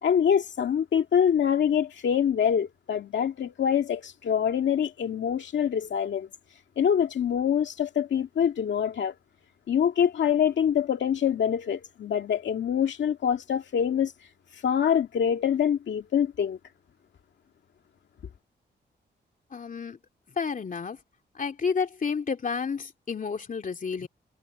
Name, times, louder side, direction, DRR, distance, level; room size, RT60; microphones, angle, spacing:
voice 1, 0.0-6.3 6.8-9.1 9.7-14.1 14.5-16.6, left 8 dB, 75° left, 2.0 m, -25 dB
voice 2, 19.5-20.0 20.4-21.0 21.3-24.1, left 5 dB, 45° left, 2.7 m, -30 dB
cardioid pair, 90°, 19 cm